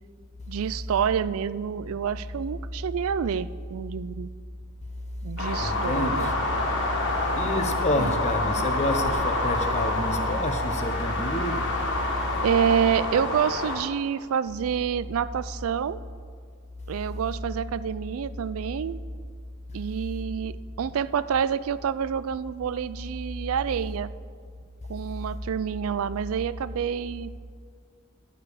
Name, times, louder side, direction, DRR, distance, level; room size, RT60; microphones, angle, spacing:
voice 1, 0.5-4.3 5.2-6.3 8.0-8.1 12.4-16.0 16.9-19.0 19.7-24.1 24.9-27.4, right 7 dB, 70° right, 0.3 m, -28 dB
sound 1, 5.4-13.8, left 2 dB, 55° left, 1.8 m, -28 dB
voice 2, 5.6-6.5 7.4-11.8, left 1 dB, 30° left, 0.8 m, -28 dB
11.5 x 5.0 x 8.2 m
head